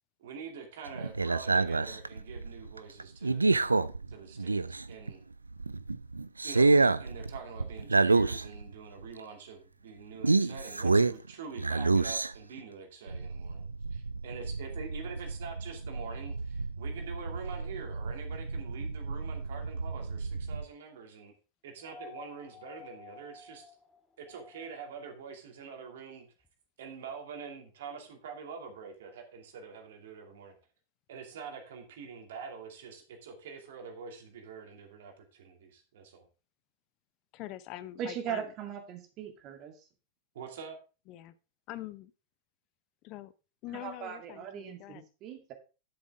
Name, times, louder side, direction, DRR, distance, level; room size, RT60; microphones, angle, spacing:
voice 1, 0.2-3.4 4.1-5.2 6.4-21.3 21.6-23.6 24.2-26.3 26.8-30.5 31.1-36.2 40.3-40.8, right 5 dB, 60° right, 4 dB, 2.6 m, -45 dB
sound 1, 0.9-5.1 5.5-8.7 9.0-9.1 10.2-11.3 11.6-12.6 13.1-20.6, right 3 dB, 80° right, 0.4 m, -29 dB
sound 2, 21.8-25.0 26.4-26.5, left 4 dB, 10° left, 1.8 m, -51 dB
voice 2, 37.3-38.5 41.1-41.4 41.7-42.1 43.0-43.3 43.6-45.0, left 14 dB, 40° left, 16 dB, 0.6 m, -44 dB
voice 3, 38.0-39.9 43.7-45.5, right 8 dB, 40° right, 5 dB, 2.3 m, -39 dB
11.5 x 7.3 x 3.6 m, 0.32 s
figure-of-eight pair, 90°, 0 cm